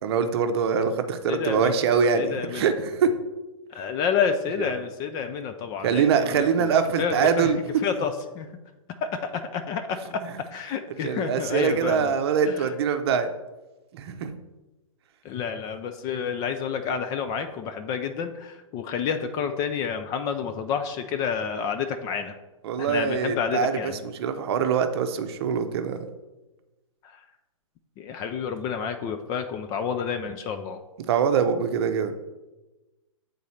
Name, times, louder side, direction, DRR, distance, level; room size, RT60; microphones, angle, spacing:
voice 1, 0.0-3.1 4.6-4.7 5.8-7.6 11.0-13.3 13.9-14.3 22.6-26.0 31.1-32.1, right 6 dB, 45° right, 8 dB, 0.7 m, -24 dB
voice 2, 1.3-1.8 2.1-2.7 3.7-7.5 7.8-8.5 9.0-10.2 10.5-12.1 12.5-12.7 15.2-22.4 22.8-24.0 27.0-27.2 28.0-30.8, left 7 dB, 20° left, 8 dB, 0.3 m, -29 dB
8.1 x 3.9 x 4.2 m, 1.1 s
hypercardioid pair, 125°, 18 cm